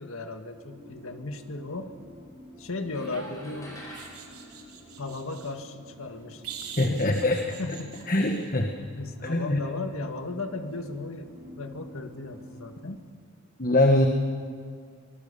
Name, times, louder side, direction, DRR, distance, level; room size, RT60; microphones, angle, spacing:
voice 1, 0.0-1.9 2.6-3.8 5.0-6.4 6.9-7.2 7.6-8.1 9.0-13.0, left 3 dB, 65° left, 6 dB, 1.7 m, -36 dB
sound 1, 0.5-12.8, left 1 dB, 20° right, 7.2 m, -50 dB
sound 2, 2.9-5.5, equal, 15° left, 5.7 m, -48 dB
sound 3, 2.9-5.5 6.4-8.5 11.1-11.3, right 6 dB, 80° right, 3.2 m, -43 dB
voice 2, 6.8-7.4 7.7-7.8 8.1-8.7 9.2-9.6 13.6-14.1, left 1 dB, 40° left, 4 dB, 1.4 m, -23 dB
25.0 x 19.5 x 6.9 m, 2.1 s
head